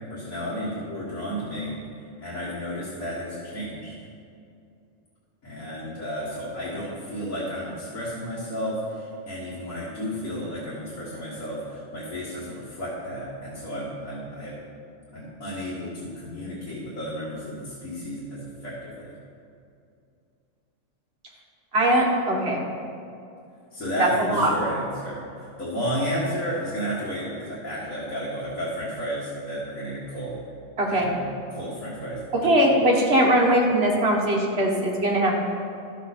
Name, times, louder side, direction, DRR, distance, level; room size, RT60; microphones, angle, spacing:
voice 1, 0.1-1.7 2.2-3.9 5.4-14.6 15.1-19.1 23.7-30.4 30.9-32.2, equal, 85° left, -7 dB, 2.2 m, -32 dB
voice 2, 21.7-22.7 24.0-24.5 30.8-31.2 32.4-35.3, right 1 dB, 50° right, -1 dB, 1.6 m, -21 dB
12.5 x 7.4 x 4.2 m, 2.5 s
omnidirectional pair, 1.4 m